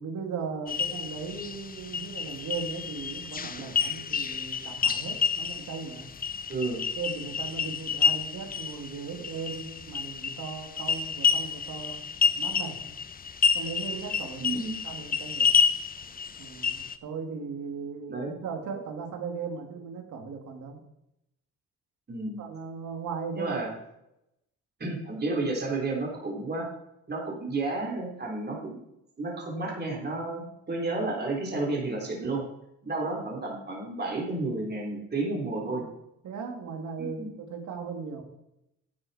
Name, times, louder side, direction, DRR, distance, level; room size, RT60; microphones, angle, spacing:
voice 1, 0.0-6.1 7.0-12.0 12.2-12.9 13.5-14.4 14.8-15.5 16.4-20.8 22.4-23.6 35.7-35.8 36.2-38.2, right 5 dB, 75° right, 3 dB, 2.4 m, -37 dB
sound 1, 0.7-17.0, left 6 dB, 30° left, 0.7 m, -29 dB
voice 2, 6.5-6.8 14.4-14.7 18.1-18.4 22.1-22.4 23.3-23.7 24.8-26.7 27.1-28.8 29.2-32.4 32.8-35.8 37.0-37.3, right 2 dB, 35° right, -2 dB, 3.6 m, -31 dB
11.5 x 9.4 x 4.3 m, 0.84 s
cardioid pair, 90°, 30 cm